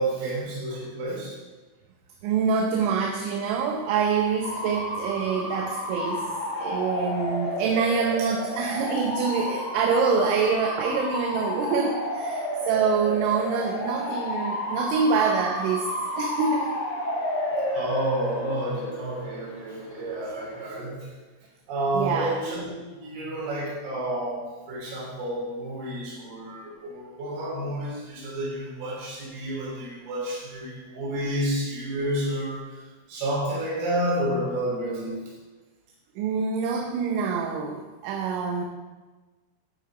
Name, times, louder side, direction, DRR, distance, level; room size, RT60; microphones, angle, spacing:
voice 1, 0.0-1.4 17.7-21.1 21.7-35.2, right 1 dB, 60° right, -3 dB, 4.9 m, -30 dB
voice 2, 2.2-15.9 16.2-16.8 21.9-22.3 36.2-38.6, right 5 dB, 80° right, 2 dB, 3.2 m, -26 dB
Bark / Motor vehicle (road) / Siren, 4.4-20.7, left 1 dB, 80° left, 1.0 m, -31 dB
11.5 x 8.4 x 5.1 m, 1.3 s
omnidirectional pair, 5.5 m